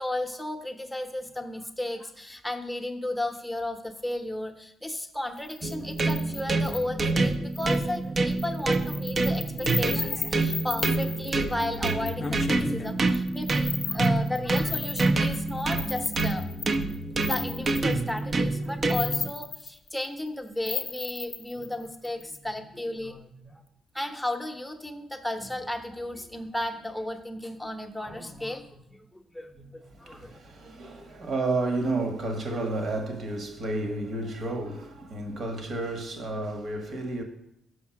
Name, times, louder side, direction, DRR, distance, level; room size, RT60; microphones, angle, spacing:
voice 1, 0.0-16.5 17.1-23.6 23.9-30.4, left 1 dB, 5° left, 0.8 m, -34 dB
sound 1, 5.4-6.8 7.5-8.0 8.3-18.2 18.7-20.3 20.6-22.4, left 5 dB, 40° left, 0.7 m, -35 dB
sound 2, 5.6-19.3, right 3 dB, 35° right, 0.6 m, -27 dB
voice 2, 30.0-37.2, right 2 dB, 55° right, 1.4 m, -31 dB
6.5 x 5.5 x 5.8 m
cardioid pair, 90°, 0 cm